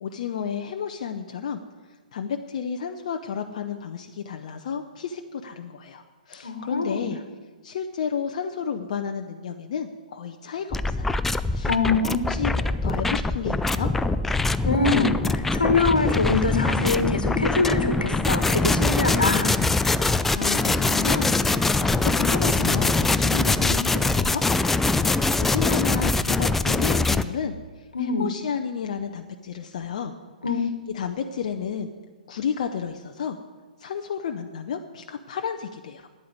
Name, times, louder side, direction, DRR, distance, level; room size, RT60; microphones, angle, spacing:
voice 1, 0.0-1.6 2.1-7.2 7.6-11.2 11.5-13.9 20.1-24.4 24.9-30.1 30.5-30.7 30.9-31.9 32.3-33.4 33.8-36.1, left 7 dB, 50° left, 5 dB, 0.7 m, -32 dB
voice 2, 6.4-7.1 11.7-12.2 14.6-19.5 27.9-28.3 30.4-30.6, left 3 dB, 75° left, 9 dB, 1.4 m, -24 dB
sound 1, 10.7-27.2, left 3 dB, 5° left, 0.3 m, -23 dB
9.6 x 8.6 x 9.4 m, 1.4 s
figure-of-eight pair, 120°, 5 cm